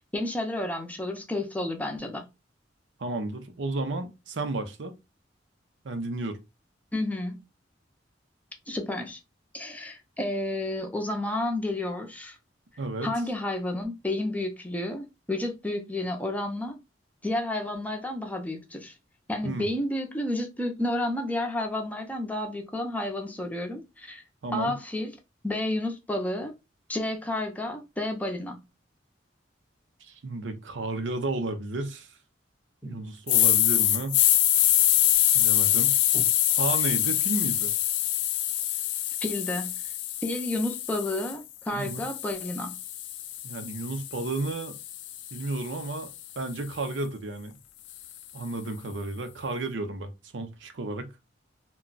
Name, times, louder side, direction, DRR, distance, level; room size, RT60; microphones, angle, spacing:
voice 1, 0.1-2.2 6.9-7.4 8.7-9.2 9.5-12.4 13.0-16.8 17.2-18.9 19.3-24.2 24.5-25.1 25.4-26.5 26.9-28.6 32.8-32.9 36.1-36.3 39.2-39.7 40.2-42.8, left 1 dB, 10° left, 0.5 m, -31 dB
voice 2, 3.0-4.9 5.8-6.4 12.8-13.1 19.4-19.7 24.4-24.8 30.0-32.1 32.8-34.2 35.3-35.9 36.6-37.7 41.7-42.0 43.4-44.8 45.3-47.6 48.3-51.1, right 2 dB, 80° right, 0.6 m, -32 dB
sound 1, 33.3-41.3 41.8-46.0, left 13 dB, 90° left, 0.4 m, -25 dB
2.3 x 2.2 x 3.8 m
head